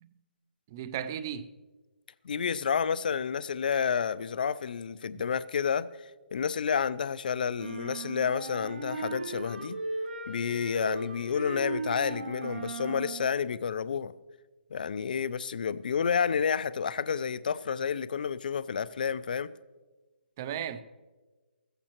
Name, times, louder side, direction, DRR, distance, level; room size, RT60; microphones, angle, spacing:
voice 1, 0.7-1.5 5.1-5.2 20.4-20.8, right 9 dB, 20° right, 0.4 m, -35 dB
voice 2, 2.2-5.9 6.3-9.8 10.3-14.1 14.7-19.5, left 6 dB, 50° left, 0.4 m, -30 dB
sound 1, 7.6-13.3, right 3 dB, 85° right, 2.1 m, -37 dB
15.0 x 15.0 x 2.9 m
hypercardioid pair, 175°, 6 cm